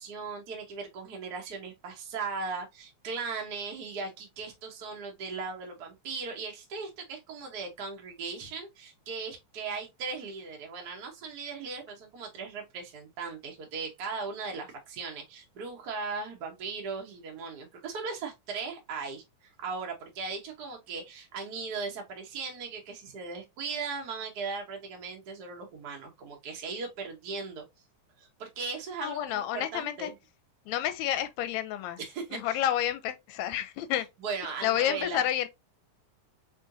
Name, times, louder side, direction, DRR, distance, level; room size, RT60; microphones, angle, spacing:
voice 1, 0.0-19.2 19.6-27.6 28.2-30.1 32.0-32.6 34.2-35.2, right 4 dB, 75° right, 0.9 m, -38 dB
voice 2, 29.0-30.1 30.7-32.0 32.3-34.1 34.6-35.5, left 11 dB, 80° left, 1.7 m, -30 dB
4.3 x 3.8 x 2.5 m
omnidirectional pair, 3.4 m